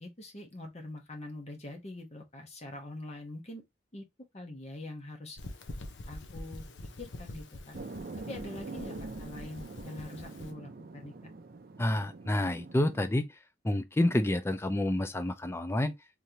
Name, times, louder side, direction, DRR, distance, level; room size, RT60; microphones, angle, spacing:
voice 1, 0.0-3.6 3.9-4.1 4.3-5.4 6.1-6.6 7.0-7.8 8.3-11.1, left 2 dB, 35° left, 1.0 m, -44 dB
sound 1, 5.4-10.5, left 1 dB, 75° left, 0.8 m, -45 dB
sound 2, 7.7-13.1, right 3 dB, 50° right, 0.5 m, -44 dB
voice 2, 11.8-13.3 13.6-15.9, left 1 dB, 15° left, 0.4 m, -28 dB
3.8 x 3.2 x 2.8 m
head